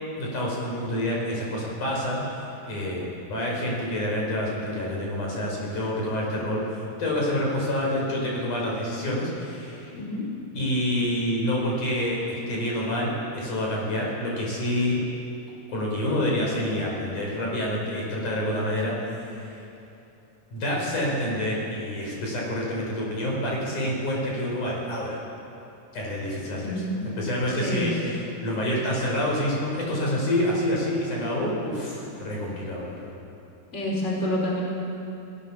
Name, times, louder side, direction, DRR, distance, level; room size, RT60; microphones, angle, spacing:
voice 1, 0.2-10.0 10.5-15.0 15.7-19.6 20.5-25.2 25.9-26.8 27.2-27.9 28.4-33.1, left 1 dB, 50° left, -3 dB, 6.5 m, -27 dB
voice 2, 26.6-26.9 27.5-28.2 33.7-34.6, left 1 dB, 15° left, -3 dB, 4.4 m, -28 dB
30.0 x 19.0 x 7.3 m, 2.8 s
omnidirectional pair, 4.7 m